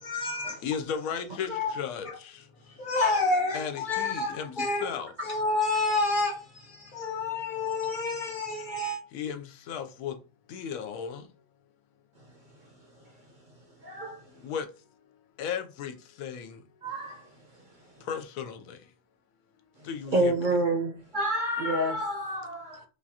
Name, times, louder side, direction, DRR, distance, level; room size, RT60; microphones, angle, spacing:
voice 1, 0.0-0.6 1.5-1.8 2.1-2.2 2.7-4.9 5.2-9.0, left 3 dB, 50° left, 0.7 m, -29 dB
voice 2, 0.6-2.3 3.5-5.1 9.1-10.1 10.5-11.2 14.4-14.7 15.4-16.6 18.1-18.8 19.8-20.3, left 7 dB, 90° left, 1.0 m, -35 dB
voice 3, 13.8-14.2 16.8-17.3 20.1-22.8, right 1 dB, 45° right, 0.7 m, -28 dB
5.0 x 2.4 x 2.7 m
omnidirectional pair, 1.4 m